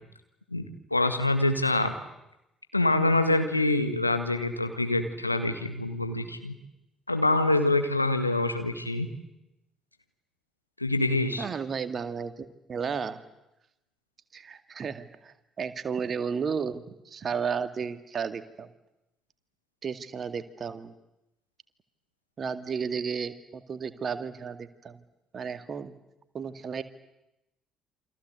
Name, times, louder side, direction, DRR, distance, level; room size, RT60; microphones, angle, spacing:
voice 1, 0.9-1.9 2.7-6.6 7.1-9.1 10.8-11.4, left 2 dB, 90° left, 7 dB, 1.7 m, -25 dB
voice 2, 11.4-13.2 14.3-18.7 19.8-20.9 22.4-25.0 25.3-25.9 26.3-26.8, right 6 dB, 40° right, 10 dB, 2.1 m, -33 dB
28.5 x 25.5 x 8.2 m, 0.91 s
figure-of-eight pair, 50°, 0 cm